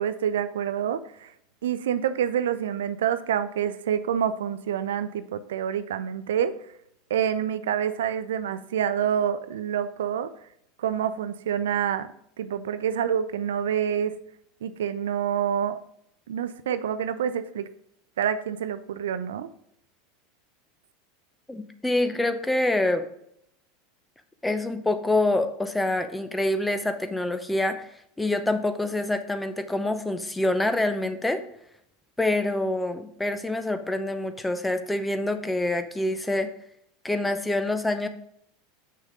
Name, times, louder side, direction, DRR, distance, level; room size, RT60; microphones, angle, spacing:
voice 1, 0.0-1.3 1.6-6.5 7.1-10.3 10.8-12.1 12.4-14.1 14.6-15.8 16.3-17.7 18.2-19.5, right 9 dB, 70° right, 13 dB, 0.4 m, -27 dB
voice 2, 21.5-23.0 24.4-27.9 28.2-31.4 32.2-36.5 37.0-38.1, left 2 dB, 10° left, 9 dB, 0.8 m, -26 dB
6.8 x 6.2 x 3.7 m, 0.72 s
hypercardioid pair, 85°, 0 cm